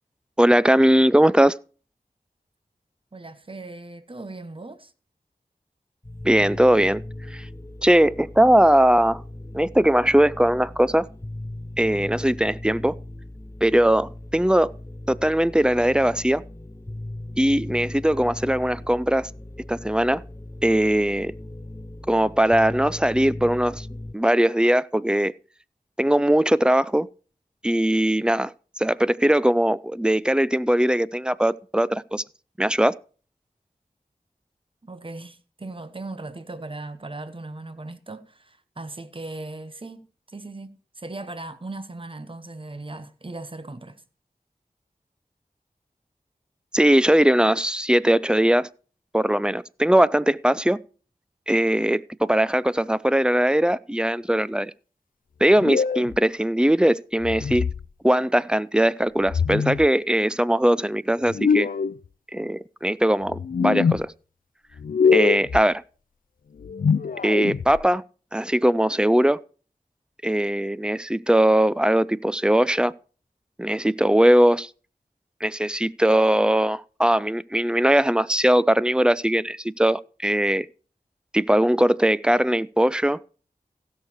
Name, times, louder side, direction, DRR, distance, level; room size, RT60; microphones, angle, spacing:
voice 1, 0.4-1.6 6.2-7.0 7.3-7.5 7.8-9.2 9.5-11.1 11.8-13.0 13.6-14.7 15.1-16.4 17.4-19.3 19.7-20.2 20.6-21.3 22.1-23.9 24.1-25.3 26.0-27.1 27.6-32.2 32.6-32.9 46.7-48.7 49.1-50.8 51.5-54.7 55.4-57.7 58.0-61.7 62.3-64.1 65.1-65.8 67.2-68.0 68.3-69.4 70.2-72.9 73.6-74.7 75.4-80.7 81.3-83.2, right 1 dB, 5° right, 0.5 m, -20 dB
voice 2, 3.1-4.9 34.8-44.0, right 2 dB, 35° right, 1.1 m, -38 dB
sound 1, 6.0-24.1, left 1 dB, 20° left, 0.8 m, -38 dB
sound 2, 55.6-56.2 57.2-57.9 59.2-59.9 61.3-62.0 63.3-64.0 64.8-65.6 66.6-67.8, left 6 dB, 70° left, 0.4 m, -23 dB
16.0 x 6.7 x 4.5 m
wide cardioid pair, 45°, 15 cm